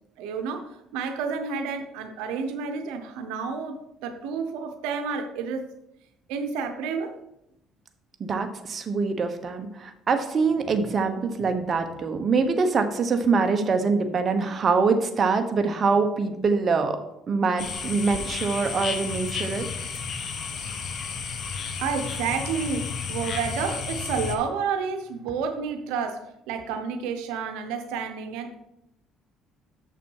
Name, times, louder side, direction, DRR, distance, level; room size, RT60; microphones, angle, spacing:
voice 1, 0.2-5.7 6.3-7.1 21.8-28.6, right 5 dB, 90° right, 6 dB, 0.8 m, -30 dB
voice 2, 8.2-17.0 17.3-19.7, right 4 dB, 40° right, 6 dB, 0.9 m, -24 dB
sound 1, 17.6-24.4, left 5 dB, 50° left, 1.0 m, -32 dB
6.9 x 5.9 x 4.6 m, 0.83 s
cardioid pair, 95°, 0 cm